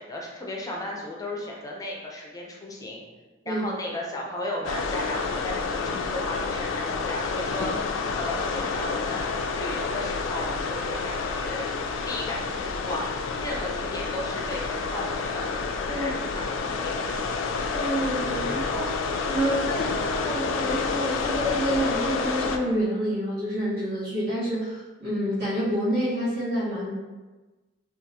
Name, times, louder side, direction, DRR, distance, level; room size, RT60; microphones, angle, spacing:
voice 1, 0.0-3.0 3.5-11.7 12.1-15.5 15.9-17.4, left 1 dB, 20° left, -2 dB, 0.5 m, -35 dB
sound 1, 4.6-22.6, left 4 dB, 85° left, 0.3 m, -29 dB
voice 2, 17.7-26.9, equal, 55° right, -11 dB, 1.3 m, -28 dB
3.6 x 2.4 x 2.8 m, 1.2 s
head